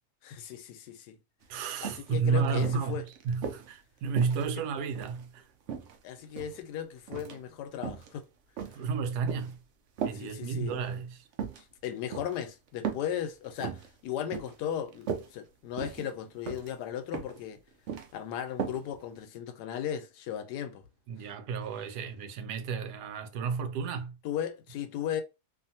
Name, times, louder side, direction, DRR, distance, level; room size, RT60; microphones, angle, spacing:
voice 1, 0.2-1.2 1.8-3.0 6.0-8.2 10.1-10.8 11.6-17.6 18.1-20.9 24.2-25.2, left 9 dB, 85° left, 1.1 m, -36 dB
sound 1, 1.4-1.5 1.8-2.1 2.6-3.7 4.2-5.2 5.7-6.6 7.1-7.4 7.7-8.1 8.6-9.5 10.0-10.2 10.7-10.9 11.3-11.6 12.1-12.4 12.8-13.1 13.4-13.9 14.3-14.6 14.9-15.3 15.8-16.1 16.5-16.7 17.1-17.4 17.7-18.1 18.6-18.8 19.2-19.3, right 7 dB, 65° right, 0.7 m, -37 dB
voice 2, 1.5-5.5 8.7-9.6 10.0-11.2 21.1-24.2, right 5 dB, 85° right, 1.1 m, -32 dB
2.7 x 2.5 x 2.7 m
omnidirectional pair, 1.7 m